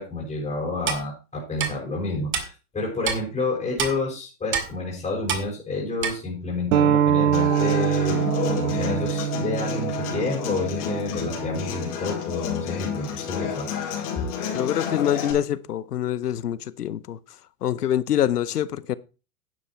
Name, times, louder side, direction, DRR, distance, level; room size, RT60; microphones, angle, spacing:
voice 1, 0.0-13.7, left 2 dB, 15° left, 5.7 m, -29 dB
Clock, 0.9-1.0 1.6-1.7 2.3-2.4 3.0-3.2 3.8-3.9 4.5-4.7 5.3-5.4 6.0-6.1, right 6 dB, 25° right, 2.1 m, -25 dB
sound 1, 6.7-11.9, right 10 dB, 65° right, 1.2 m, -24 dB
Human voice / Acoustic guitar, 7.3-15.3, left 8 dB, 55° left, 5.0 m, -30 dB
voice 2, 14.5-17.2 17.6-19.0, left 10 dB, 85° left, 0.9 m, -25 dB
10.5 x 8.2 x 4.5 m
hypercardioid pair, 120°, 45 cm